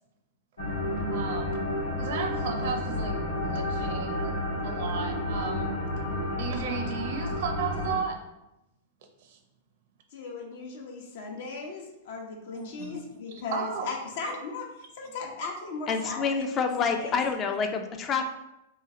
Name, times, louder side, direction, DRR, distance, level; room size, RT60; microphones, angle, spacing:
sound 1, 0.6-8.0, left 1 dB, 90° left, 1.1 m, -31 dB
voice 1, 1.1-1.6 2.0-5.7 6.4-8.3 9.2-9.4 12.5-13.0 13.3-13.9, right 5 dB, 60° right, 4 dB, 0.6 m, -35 dB
voice 2, 10.1-14.7 14.9-17.2, left 4 dB, 65° left, 1 dB, 0.7 m, -37 dB
voice 3, 15.9-18.2, left 5 dB, 30° left, 5 dB, 0.4 m, -27 dB
3.1 x 2.3 x 3.6 m, 0.89 s
hypercardioid pair, 105°, 0 cm